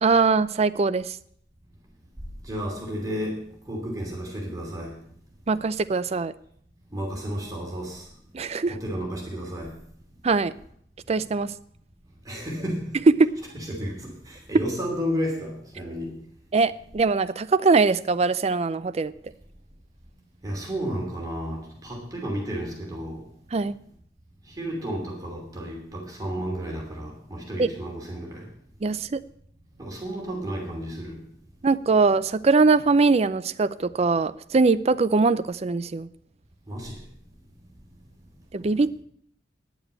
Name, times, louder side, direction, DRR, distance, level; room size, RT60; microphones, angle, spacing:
voice 1, 0.0-1.2 5.5-6.3 8.3-8.7 10.2-10.5 11.1-11.5 13.2-13.3 16.5-19.1 23.5-23.8 27.6-27.7 28.8-29.2 31.6-36.1 38.5-39.0, right 4 dB, 35° right, 14 dB, 0.4 m, -22 dB
voice 2, 2.5-3.4 3.7-4.9 6.9-8.0 8.7-9.7 12.3-12.9 13.5-16.1 20.4-23.2 24.6-28.5 29.8-31.2 36.7-37.0, equal, 20° right, -2 dB, 2.9 m, -32 dB
10.0 x 7.1 x 8.0 m, 0.66 s
head